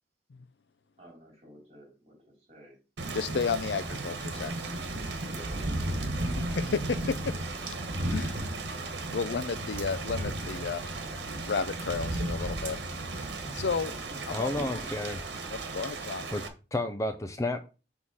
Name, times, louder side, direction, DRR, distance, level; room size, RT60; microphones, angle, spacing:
voice 1, 1.0-2.8 3.8-4.0 5.2-6.3, equal, 35° right, 3.5 m, -53 dB
Thunder / Rain, 3.0-16.5, right 2 dB, 70° right, 1.5 m, -34 dB
voice 2, 3.1-4.7 5.6-5.7 6.2-7.2 8.1-8.5 9.1-10.8 11.3-12.8 13.1-13.9 14.3-14.5 15.5-16.3, left 5 dB, 70° left, 0.5 m, -33 dB
sound 1, 6.4-8.5 8.9-9.6 9.9-10.8 11.0-11.2 11.7-15.0, equal, 20° right, 3.3 m, -47 dB
voice 3, 14.3-15.2 16.3-16.4 16.7-17.6, left 1 dB, 15° left, 0.5 m, -31 dB
6.3 x 3.6 x 6.1 m
head